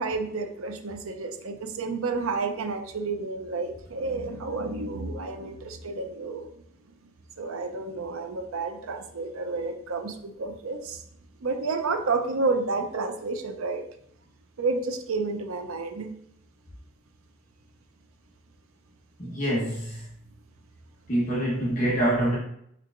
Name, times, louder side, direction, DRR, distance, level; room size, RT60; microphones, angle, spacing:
voice 1, 0.0-6.5 7.4-11.0 11.4-13.9 14.6-16.1, right 3 dB, 90° right, 6 dB, 0.6 m, -30 dB
voice 2, 19.2-20.1 21.1-22.4, right 1 dB, 40° left, -6 dB, 1.1 m, -25 dB
4.4 x 4.4 x 2.5 m, 0.71 s
head